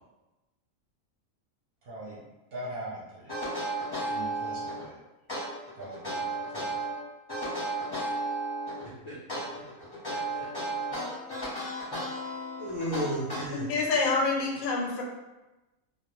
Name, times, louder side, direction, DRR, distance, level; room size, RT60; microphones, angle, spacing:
voice 1, 1.8-2.2 2.5-3.3 4.0-4.9 5.8-6.8 7.9-8.1, right 1 dB, 55° right, -6 dB, 0.7 m, -42 dB
sound 1, 3.3-4.8 5.3-6.9 7.3-8.8 9.3-13.8, right 2 dB, 20° left, 0.7 m, -33 dB
voice 2, 8.8-9.1 9.5-9.6 10.1-11.0 12.6-13.7, equal, 50° left, -9 dB, 0.3 m, -35 dB
voice 3, 13.5-15.0, left 3 dB, 85° left, 0 dB, 1.0 m, -27 dB
2.3 x 2.1 x 2.9 m, 1.0 s
omnidirectional pair, 1.4 m